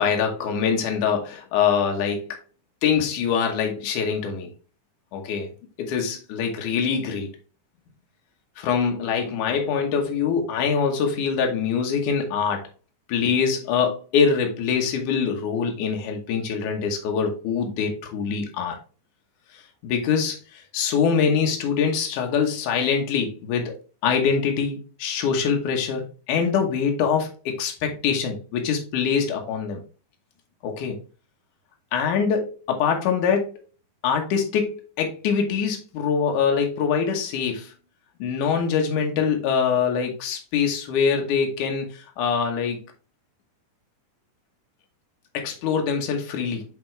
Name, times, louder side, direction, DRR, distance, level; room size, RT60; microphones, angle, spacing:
voice 1, 0.0-2.4 2.8-4.5 5.1-5.5 5.8-7.3 8.6-12.7 13.1-18.8 19.5-23.8 24.0-29.8 30.6-31.0 31.9-33.6 34.0-37.7 38.2-42.8 45.3-46.6, left 6 dB, 70° left, 2 dB, 2.6 m, -24 dB
8.5 x 3.7 x 3.3 m, 0.34 s
omnidirectional pair, 3.8 m